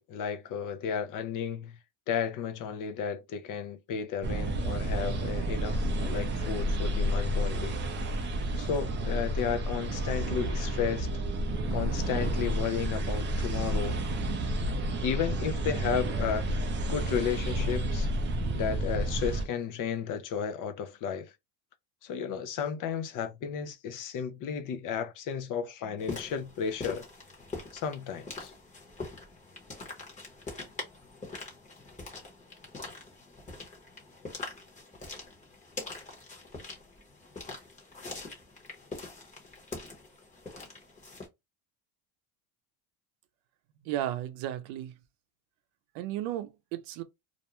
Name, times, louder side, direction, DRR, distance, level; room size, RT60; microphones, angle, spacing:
voice 1, 0.0-1.8 2.1-7.8 8.6-11.1 11.7-14.0 15.0-18.1 18.5-21.3 22.0-27.1 27.7-28.5, left 7 dB, 45° left, 0.5 m, -33 dB
sound 1, 4.2-19.4, right 1 dB, 25° right, 0.4 m, -30 dB
sound 2, 26.0-41.3, left 3 dB, 15° left, 0.9 m, -43 dB
voice 2, 43.8-44.9 45.9-47.0, right 12 dB, 80° right, 0.6 m, -34 dB
2.5 x 2.1 x 2.9 m
cardioid pair, 135°, 48 cm